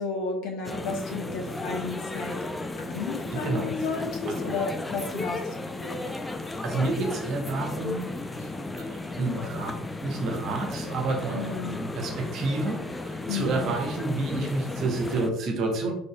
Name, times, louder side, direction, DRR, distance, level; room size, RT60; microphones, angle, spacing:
voice 1, 0.0-2.4 2.8-6.1 8.4-8.5 11.3-11.8 13.3-13.7, left 4 dB, 60° left, 2 dB, 0.9 m, -33 dB
sound 1, 0.6-15.3, left 2 dB, 15° left, 0.4 m, -34 dB
voice 2, 3.3-3.7 4.3-4.4 6.0-6.2 6.6-8.2 8.8-15.9, right 3 dB, 55° right, 3 dB, 0.9 m, -30 dB
4.0 x 3.6 x 2.3 m, 0.79 s
hypercardioid pair, 65°, 0 cm